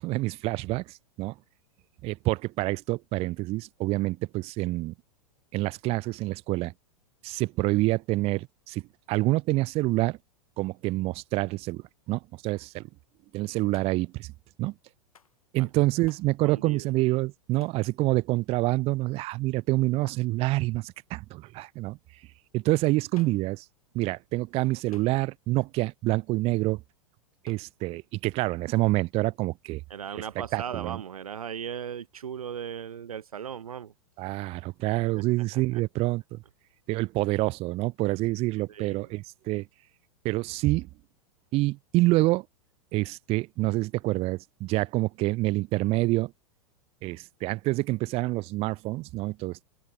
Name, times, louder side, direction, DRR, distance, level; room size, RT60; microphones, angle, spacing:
voice 1, 0.0-1.3 2.0-4.9 5.5-6.7 7.2-8.8 9.1-10.2 10.6-12.9 13.3-14.3 14.6-14.7 15.5-22.0 22.5-23.7 23.9-26.8 27.4-29.8 30.5-31.0 34.2-36.4 36.9-39.7 40.2-40.9 41.5-42.5 42.9-46.3 47.0-49.6, right 20 dB, 35° right, 0.5 m, -27 dB
Hands, 13.7-14.2 15.1-15.4 16.1-16.4 17.6-17.9 20.0-20.3 23.2-23.5 24.9-25.5 27.5-27.8, left 6 dB, 80° left, 3.3 m, -56 dB
voice 2, 16.4-16.9 29.9-33.9 35.1-35.3 35.5-35.6 38.7-39.1, right 8 dB, 80° right, 0.6 m, -37 dB
figure-of-eight pair, 95°, 18 cm